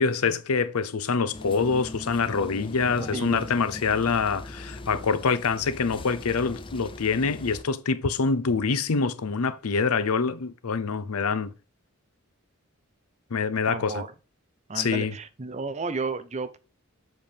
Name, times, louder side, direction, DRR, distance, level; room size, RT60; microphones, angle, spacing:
voice 1, 0.0-11.5 13.3-14.0 14.7-15.1, left 5 dB, 85° left, 0.7 m, -25 dB
sound 1, 1.3-7.6, left 2 dB, 25° left, 0.5 m, -40 dB
voice 2, 3.0-3.4 13.7-14.1 14.7-16.6, right 3 dB, 30° right, 0.6 m, -32 dB
7.6 x 4.5 x 3.4 m
head